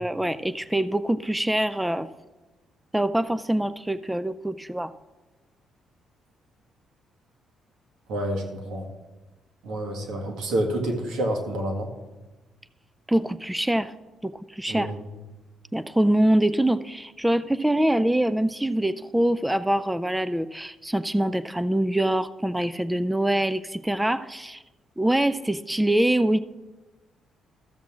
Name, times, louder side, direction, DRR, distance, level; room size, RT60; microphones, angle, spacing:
voice 1, 0.0-2.1 2.9-4.9 13.1-13.9 14.2-14.9 15.7-24.6 25.0-26.4, right 1 dB, 5° right, 14 dB, 0.3 m, -24 dB
voice 2, 8.1-8.9 9.6-11.9 14.7-15.0, right 1 dB, 85° right, 2 dB, 1.8 m, -28 dB
14.0 x 7.3 x 3.7 m, 1.1 s
cardioid pair, 90°, 0 cm